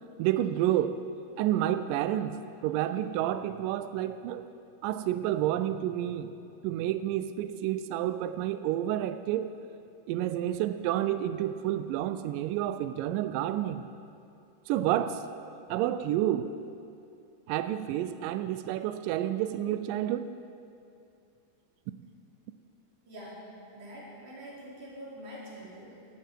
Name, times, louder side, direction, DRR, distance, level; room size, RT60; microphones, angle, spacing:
voice 1, 0.2-1.0 1.4-2.4 2.6-4.4 4.8-6.3 6.6-9.5 10.1-13.9 14.7-15.2 15.7-16.5 17.5-20.3, right 12 dB, 85° right, 11 dB, 2.0 m, -29 dB
voice 2, 23.1-23.4 23.7-26.2, equal, 55° right, -6 dB, 5.2 m, -45 dB
20.0 x 14.0 x 4.6 m, 2.5 s
omnidirectional pair, 4.4 m